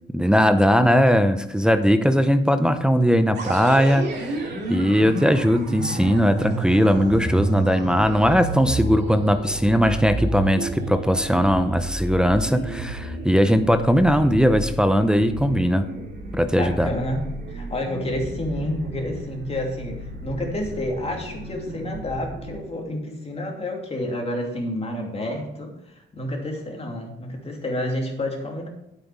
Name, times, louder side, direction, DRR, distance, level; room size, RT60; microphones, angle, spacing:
voice 1, 0.1-4.4 4.7-15.9 16.3-16.9, equal, 5° right, 8 dB, 0.7 m, -19 dB
sound 1, 3.3-22.6, right 2 dB, 55° right, 3.0 m, -32 dB
voice 2, 16.6-28.7, left 1 dB, 30° left, 1 dB, 2.7 m, -29 dB
9.3 x 8.1 x 4.8 m, 0.83 s
cardioid pair, 90°, 20 cm